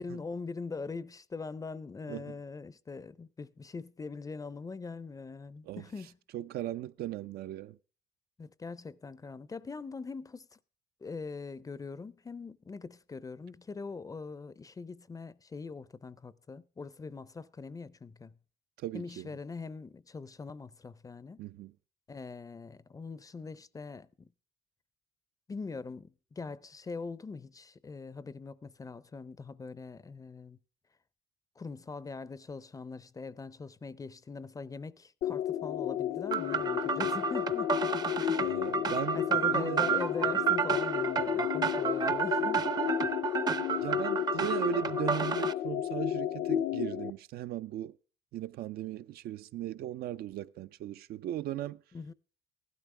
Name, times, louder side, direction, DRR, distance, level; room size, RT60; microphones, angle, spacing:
voice 1, 0.0-6.2 8.4-10.6 11.0-18.4 18.9-21.4 22.1-24.3 25.5-30.6 31.6-37.8 38.2-38.5 39.1-42.7 51.9-52.1, left 4 dB, 20° left, 0.5 m, -42 dB
voice 2, 6.3-7.8 18.8-19.3 21.4-21.7 38.4-39.3 39.5-39.9 43.8-48.0 48.3-51.8, right 12 dB, 65° right, 0.5 m, -37 dB
sound 1, 35.2-47.1, left 11 dB, 60° left, 0.6 m, -32 dB
sound 2, 36.3-45.5, right 7 dB, 25° right, 0.6 m, -31 dB
15.5 x 12.5 x 3.3 m
cardioid pair, 110°, 17 cm